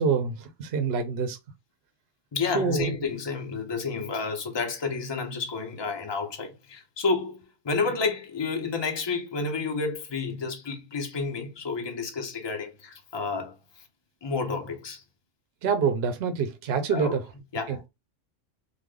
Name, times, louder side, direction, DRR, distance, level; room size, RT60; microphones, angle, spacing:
voice 1, 0.0-1.4 2.5-2.9 15.6-17.2 17.7-17.9, right 5 dB, 65° right, 0.8 m, -26 dB
voice 2, 2.3-13.8 14.2-15.0 16.9-17.2 17.5-17.9, left 4 dB, 30° left, 0.6 m, -30 dB
3.2 x 2.1 x 3.6 m
omnidirectional pair, 1.2 m